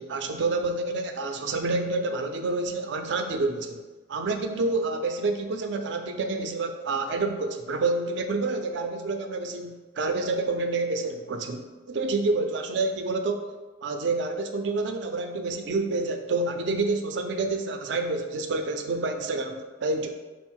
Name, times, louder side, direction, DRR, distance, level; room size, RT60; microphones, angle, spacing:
voice 1, 0.0-3.8 4.1-13.4 13.8-20.1, right 3 dB, 65° right, 6 dB, 0.4 m, -28 dB
4.0 x 2.0 x 4.4 m, 1.2 s
head